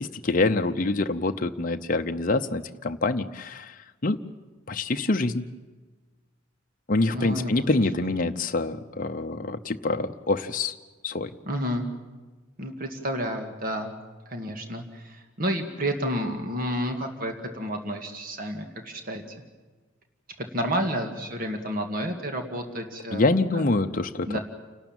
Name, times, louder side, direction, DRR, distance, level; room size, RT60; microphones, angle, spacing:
voice 1, 0.0-4.2 4.7-5.5 6.9-10.7 11.0-11.3 23.1-24.4, left 2 dB, 40° left, 5 dB, 0.7 m, -26 dB
voice 2, 7.1-7.7 11.4-11.8 12.6-13.9 14.3-19.2 20.4-23.2 23.5-23.6 24.3-24.4, equal, 45° right, 5 dB, 2.1 m, -30 dB
29.0 x 12.5 x 8.9 m, 1.3 s
head